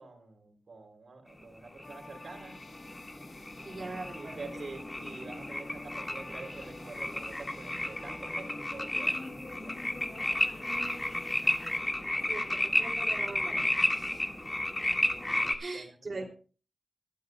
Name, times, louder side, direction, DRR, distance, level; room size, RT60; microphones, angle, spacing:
voice 1, 0.0-2.6 4.1-9.8 15.7-16.3, right 3 dB, 85° right, 3 dB, 3.4 m, -47 dB
sound 1, 1.8-11.8, left 2 dB, 75° left, 1.8 m, -49 dB
sound 2, 1.8-15.5, left 1 dB, 20° left, 1.9 m, -33 dB
voice 2, 3.6-4.4 10.6-11.2 12.3-14.3 15.6-16.3, right 3 dB, 55° right, -1 dB, 3.0 m, -42 dB
22.5 x 13.0 x 2.3 m, 0.37 s
wide cardioid pair, 115°, 0 cm